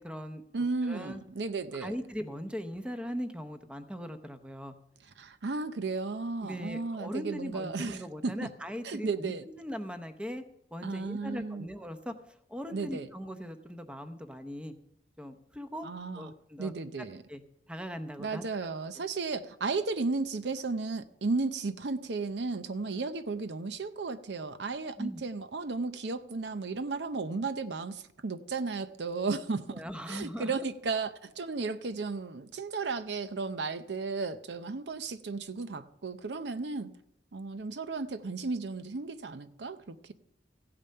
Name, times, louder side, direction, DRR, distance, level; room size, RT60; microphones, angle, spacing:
voice 1, 0.0-0.4 0.8-1.2 1.7-4.7 6.4-9.3 9.6-10.4 10.7-12.1 12.5-14.7 15.2-15.9 16.1-16.7 17.0-17.4 17.7-18.4 25.0-25.2 29.7-30.6, equal, 5° right, 0.8 m, -39 dB
voice 2, 0.5-2.0 5.2-8.5 8.8-9.5 10.8-11.7 12.7-13.1 15.8-16.3 16.6-17.2 18.2-29.8 30.1-36.9 37.3-40.1, right 3 dB, 70° right, 0.6 m, -34 dB
15.5 x 8.7 x 5.6 m
head